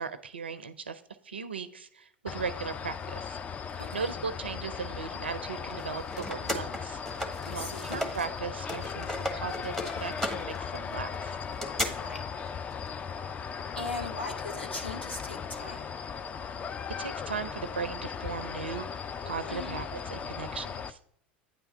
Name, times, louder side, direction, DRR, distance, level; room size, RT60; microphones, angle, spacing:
voice 1, 0.0-3.4 3.9-7.0 7.5-11.4 17.0-21.0, right 5 dB, 75° right, 13 dB, 0.4 m, -37 dB
sound 1, 2.3-20.9, left 6 dB, 25° left, 0.4 m, -37 dB
voice 2, 3.7-4.1 7.4-8.0 12.0-12.3 13.8-15.9 19.5-19.8, left 2 dB, 85° left, 2 dB, 1.1 m, -39 dB
sound 2, 5.7-8.3 8.6-11.9, equal, 5° left, 1.1 m, -35 dB
8.9 x 3.4 x 5.4 m, 0.71 s
figure-of-eight pair, 80°, 6 cm